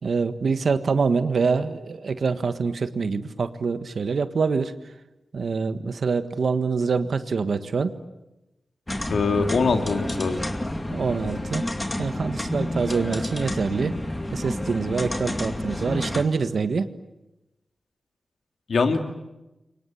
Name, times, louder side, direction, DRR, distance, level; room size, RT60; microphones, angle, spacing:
voice 1, 0.0-4.7 5.3-8.0 10.9-11.6 12.0-13.9 14.3-16.9, right 5 dB, 65° right, 10 dB, 1.5 m, -25 dB
sound 1, 8.9-16.3, left 1 dB, 20° left, 2.4 m, -30 dB
voice 2, 9.1-10.4 18.7-19.0, left 4 dB, 75° left, 5 dB, 2.9 m, -22 dB
29.5 x 25.0 x 7.9 m, 0.97 s
wide cardioid pair, 130°, 0 cm